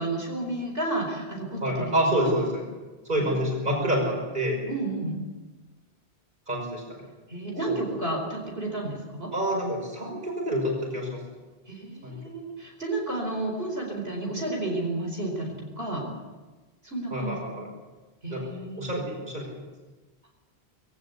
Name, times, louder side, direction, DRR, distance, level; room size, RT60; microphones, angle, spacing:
voice 1, 0.0-1.9 2.2-2.3 3.2-3.4 4.7-5.2 7.3-9.3 11.7-16.0 16.8-17.4 18.2-19.0, right 2 dB, 65° right, 0 dB, 4.8 m, -31 dB
voice 2, 1.6-2.6 3.0-4.6 6.5-7.0 7.7-7.8 9.3-11.2 12.0-12.2 17.1-17.7 18.3-19.5, equal, 45° right, -1 dB, 6.1 m, -28 dB
22.0 x 16.5 x 8.4 m, 1.2 s
omnidirectional pair, 1.1 m